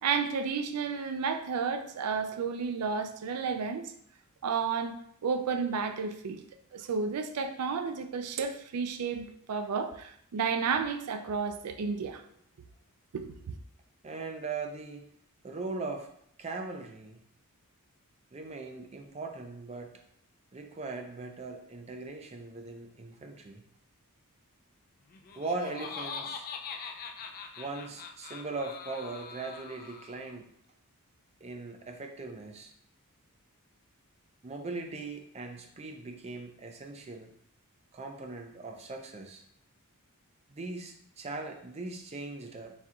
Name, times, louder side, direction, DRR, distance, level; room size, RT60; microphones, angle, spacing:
voice 1, 0.0-3.9 4.4-5.0 5.2-6.4 6.7-12.2 13.1-13.4, right 5 dB, 90° right, 8 dB, 0.4 m, -32 dB
voice 2, 14.0-15.1 15.4-16.1 16.4-17.2 18.3-19.9 20.5-23.6 25.4-26.5 27.6-30.5 31.4-32.7 34.4-37.3 37.9-39.4 40.5-42.7, right 3 dB, 30° right, 4 dB, 0.5 m, -39 dB
Laughter, 25.1-30.4, left 5 dB, 40° left, 0.3 m, -42 dB
4.3 x 2.3 x 3.6 m, 0.68 s
head